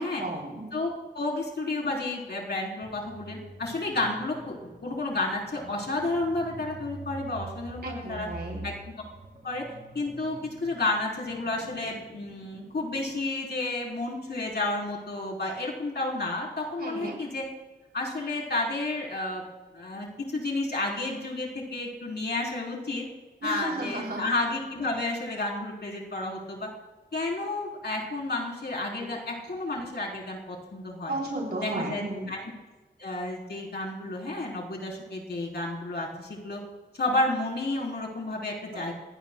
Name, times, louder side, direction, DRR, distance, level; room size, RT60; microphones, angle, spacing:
voice 1, 0.0-0.7 7.8-8.6 16.8-17.1 23.4-24.2 28.9-29.1 31.1-32.3 38.7-38.8, right 2 dB, 65° right, -2 dB, 3.3 m, -34 dB
voice 2, 0.7-8.3 8.6-8.9 9.4-9.6 9.9-17.5 17.9-19.4 19.7-20.1 20.3-23.0 23.4-26.7 27.1-31.2 31.6-32.0 32.3-32.4 33.0-36.6 37.0-38.9, left 2 dB, 65° left, -2 dB, 3.7 m, -31 dB
sound 1, 2.8-13.3, right 2 dB, 45° right, 3.2 m, -46 dB
24.0 x 17.0 x 2.3 m, 1.2 s
wide cardioid pair, 90°, 18 cm